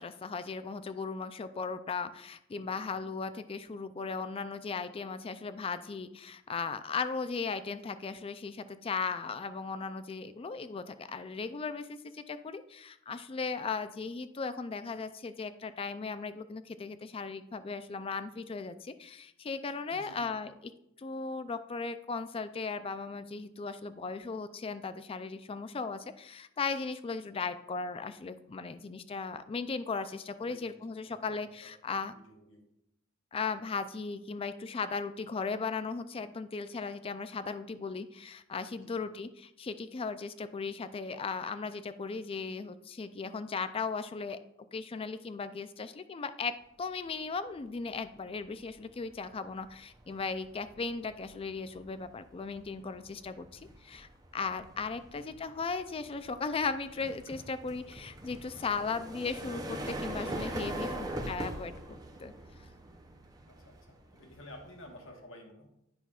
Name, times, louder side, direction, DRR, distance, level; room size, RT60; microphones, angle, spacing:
voice 1, 0.0-20.5 21.0-32.1 33.3-44.4 44.7-60.9 61.3-62.3, left 4 dB, 30° left, 12 dB, 0.3 m, -37 dB
voice 2, 2.5-3.0 19.9-20.3 30.4-31.7 32.1-32.7 38.7-39.0 55.1-55.4 60.8-61.1 63.5-65.7, left 1 dB, 70° left, 2 dB, 1.2 m, -53 dB
sound 1, 47.7-48.0 48.4-65.1, right 1 dB, 20° right, 0.6 m, -43 dB
10.0 x 5.8 x 2.4 m, 0.78 s
head